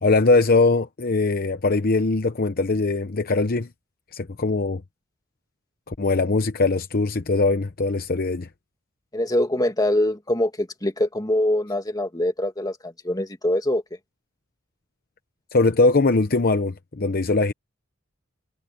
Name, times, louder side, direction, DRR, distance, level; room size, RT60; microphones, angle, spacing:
voice 1, 0.0-3.7 4.1-4.8 5.9-8.5 15.5-17.5, left 3 dB, 50° left, 0.8 m, -21 dB
voice 2, 9.1-13.8, left 1 dB, 20° left, 2.3 m, -24 dB
head